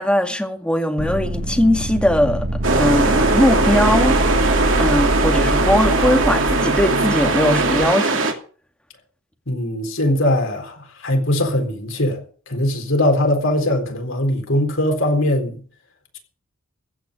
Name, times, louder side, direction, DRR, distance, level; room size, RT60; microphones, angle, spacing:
voice 1, 0.0-2.5 2.7-4.2 4.8-8.3, left 1 dB, 5° left, 2.0 m, -19 dB
sound 1, 1.0-7.8, right 1 dB, 50° right, 2.0 m, -24 dB
sound 2, 2.6-8.3, right 3 dB, 70° right, 2.6 m, -19 dB
voice 2, 9.5-15.6, left 1 dB, 70° left, 4.0 m, -21 dB
15.5 x 6.1 x 9.9 m
head